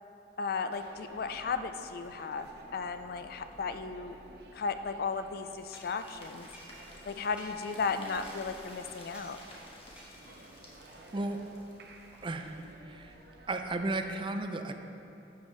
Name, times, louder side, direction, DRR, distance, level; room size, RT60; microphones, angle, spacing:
voice 1, 0.4-4.2 4.5-6.5 7.1-9.4, left 5 dB, 55° left, 9 dB, 0.4 m, -35 dB
sound 1, 0.7-14.2, right 1 dB, 65° right, 0.8 m, -54 dB
sound 2, 5.6-12.8, left 1 dB, 30° left, 1.3 m, -53 dB
sound 3, 5.7-7.1 7.4-7.8 8.2-8.7 9.1-9.4 10.0-10.5, right 1 dB, 5° right, 1.2 m, -54 dB
voice 2, 12.2-12.6 12.8-13.1 13.5-14.7, right 2 dB, 30° right, 6 dB, 0.4 m, -34 dB
11.5 x 7.3 x 3.2 m, 2.8 s
head